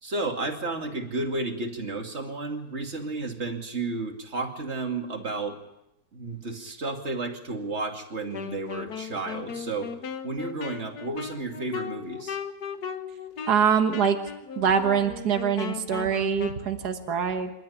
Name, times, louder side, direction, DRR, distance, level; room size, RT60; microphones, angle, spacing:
voice 1, 0.0-5.6 6.1-9.9 10.2-12.4, right 3 dB, 40° right, 3 dB, 2.9 m, -32 dB
Wind instrument woodwind instrument, 8.3-16.7, left 7 dB, 70° left, 1.7 m, -37 dB
voice 2, 13.5-14.2 14.6-17.5, right 7 dB, 70° right, 6 dB, 2.0 m, -24 dB
27.0 x 13.0 x 10.0 m, 0.86 s
omnidirectional pair, 1.8 m